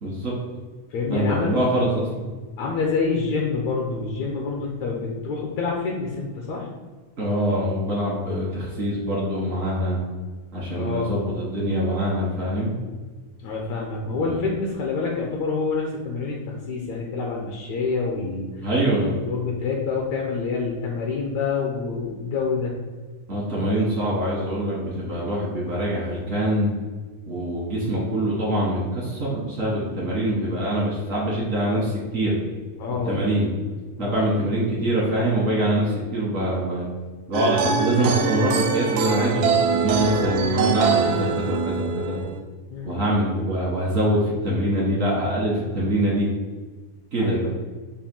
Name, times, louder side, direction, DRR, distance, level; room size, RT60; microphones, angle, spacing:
voice 1, 0.0-0.3 1.1-2.1 7.2-10.0 10.5-12.7 14.1-14.4 18.6-19.1 23.3-26.7 27.3-32.3 33.1-33.5 34.0-36.9 37.3-42.2 42.8-46.3 47.1-47.4, right 1 dB, 60° right, -6 dB, 0.8 m, -24 dB
voice 2, 0.9-1.5 2.6-6.7 10.7-11.2 13.4-18.5 19.3-22.7 32.8-33.2 34.0-34.2 42.7-43.0 47.2-47.6, left 4 dB, 70° left, -1 dB, 2.0 m, -27 dB
sound 1, 37.3-42.4, right 5 dB, 80° right, 1.8 m, -23 dB
7.1 x 2.8 x 5.4 m, 1.4 s
omnidirectional pair, 3.6 m